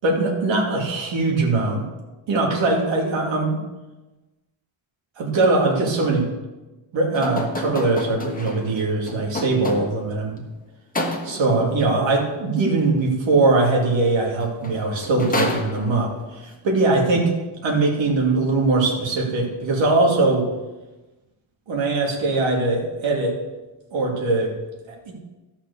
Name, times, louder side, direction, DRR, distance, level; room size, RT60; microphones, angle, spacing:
voice 1, 0.0-1.8 2.3-3.6 5.2-6.3 6.9-10.4 11.2-16.1 16.4-17.3 17.6-20.5 21.7-23.4 23.9-24.5 24.9-25.1, right 3 dB, 65° right, -1 dB, 2.5 m, -21 dB
sound 1, 7.1-10.2 11.0-11.6 14.3-14.4 14.6-16.2, left 1 dB, 15° left, 1.3 m, -29 dB
13.0 x 5.8 x 6.8 m, 1.1 s
cardioid pair, 160°, 49 cm